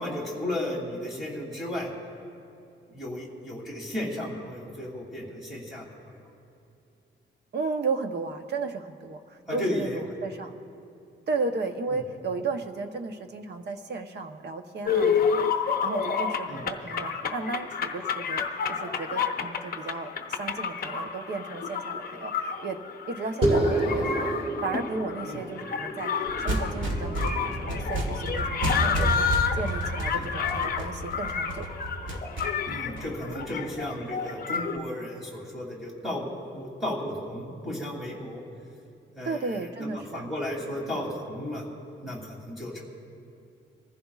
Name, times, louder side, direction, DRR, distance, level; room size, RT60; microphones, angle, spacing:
voice 1, 0.0-1.9 2.9-6.3 9.5-10.0 11.9-12.0 16.5-16.7 25.3-25.4 30.1-30.3 32.6-38.4 39.1-41.6 42.0-42.8, left 1 dB, ahead, -4 dB, 2.9 m, -34 dB
voice 2, 7.5-10.5 11.3-22.8 23.1-24.3 24.6-26.1 26.4-31.6 39.2-40.3, right 3 dB, 60° right, 6 dB, 0.9 m, -34 dB
sound 1, 14.9-34.8, left 6 dB, 50° left, 0.7 m, -30 dB
sound 2, 23.4-28.2, right 1 dB, 30° right, 2.9 m, -29 dB
sound 3, 26.3-33.7, right 1 dB, 75° right, 1.8 m, -31 dB
25.0 x 15.0 x 2.4 m, 2.6 s
wide cardioid pair, 175°, 20 cm